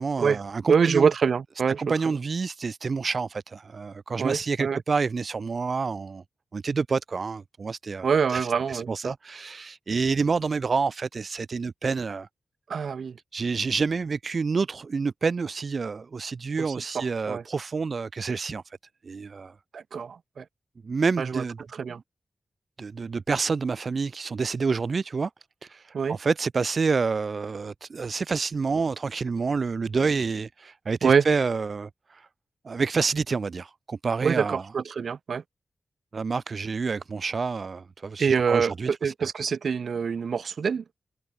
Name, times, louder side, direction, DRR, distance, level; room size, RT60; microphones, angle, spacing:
voice 1, 0.0-1.1 1.8-6.2 6.5-12.3 13.3-18.6 19.0-19.5 20.8-21.6 22.8-25.3 25.6-32.3 32.6-34.6 36.1-39.1, right 4 dB, 50° right, 0.9 m, -28 dB
voice 2, 0.7-1.8 4.2-4.8 8.0-9.1 12.7-13.2 16.6-17.4 19.7-20.4 21.2-21.4 21.7-22.0 25.9-26.2 31.0-31.2 34.2-35.4 38.2-40.8, right 6 dB, 75° right, 1.6 m, -25 dB
wide cardioid pair, 120°, 0 cm